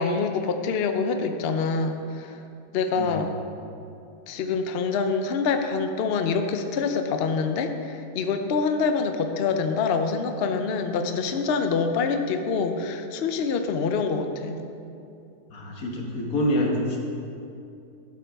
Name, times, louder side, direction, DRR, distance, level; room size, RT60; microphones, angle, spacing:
voice 1, 0.0-2.3 2.7-3.3 4.3-14.6, left 5 dB, 85° left, 6 dB, 0.5 m, -26 dB
voice 2, 2.9-3.3 15.5-17.0, left 1 dB, 55° left, -1 dB, 1.8 m, -26 dB
12.5 x 8.3 x 3.5 m, 2.6 s
omnidirectional pair, 1.9 m